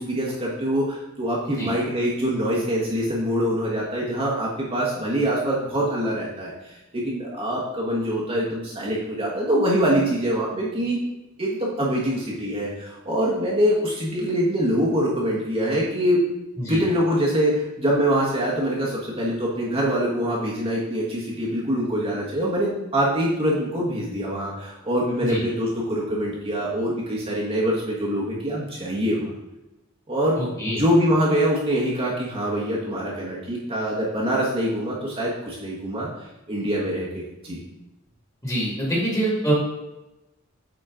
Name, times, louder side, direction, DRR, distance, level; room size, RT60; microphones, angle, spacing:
voice 1, 0.0-11.0 11.4-16.2 16.7-29.3 30.1-30.4 30.7-36.1 36.5-37.6, equal, 30° right, -5 dB, 1.3 m, -24 dB
voice 2, 30.4-30.8 38.4-39.5, right 1 dB, 15° left, -5 dB, 2.1 m, -25 dB
8.9 x 4.3 x 3.8 m, 0.98 s
head